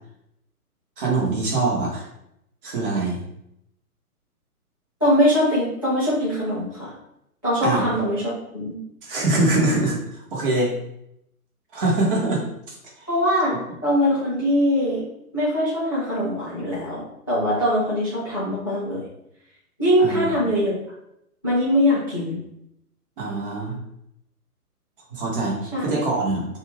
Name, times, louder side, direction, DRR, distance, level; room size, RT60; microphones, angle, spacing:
voice 1, 1.0-2.1 2.6-3.2 7.6-7.8 9.0-10.0 10.3-10.7 11.7-13.1 20.0-20.5 23.2-23.8 25.1-26.6, right 2 dB, 35° right, -3 dB, 1.0 m, -24 dB
voice 2, 5.0-6.9 7.4-8.8 13.1-15.0 15.3-17.0 17.3-19.0 19.8-20.8 21.4-22.4 25.7-25.9, equal, 15° left, -10 dB, 0.3 m, -22 dB
2.4 x 2.4 x 3.2 m, 0.79 s
figure-of-eight pair, 125°, 45 cm